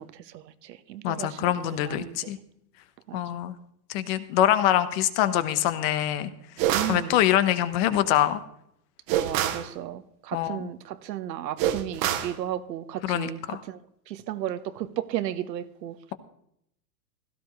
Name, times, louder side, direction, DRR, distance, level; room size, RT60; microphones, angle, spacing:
voice 1, 0.0-2.3 3.1-3.2 6.7-7.2 9.1-13.8 14.1-16.0, right 12 dB, 85° right, 1.3 m, -34 dB
voice 2, 1.0-2.4 3.1-3.5 3.9-6.3 6.9-8.4 10.3-10.6 13.0-13.6, left 12 dB, 35° left, 1.0 m, -24 dB
sound 1, 6.6-7.0 9.1-9.7 11.6-12.4, right 11 dB, 20° right, 0.5 m, -26 dB
17.0 x 15.0 x 3.1 m
supercardioid pair, 160°, 49 cm